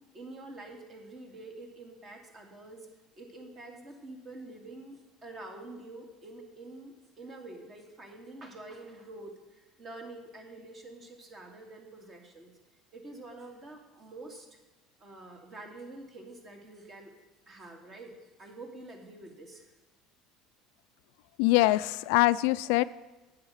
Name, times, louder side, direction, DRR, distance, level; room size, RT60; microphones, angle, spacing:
voice 1, 0.1-2.9 3.1-12.5 12.9-14.5 15.0-17.1 17.5-18.1 18.4-19.6, right 2 dB, 35° right, 3 dB, 2.3 m, -47 dB
voice 2, 21.4-22.8, left 18 dB, 80° left, 16 dB, 0.3 m, -23 dB
9.2 x 8.1 x 6.4 m, 1.2 s
supercardioid pair, 110°, 0 cm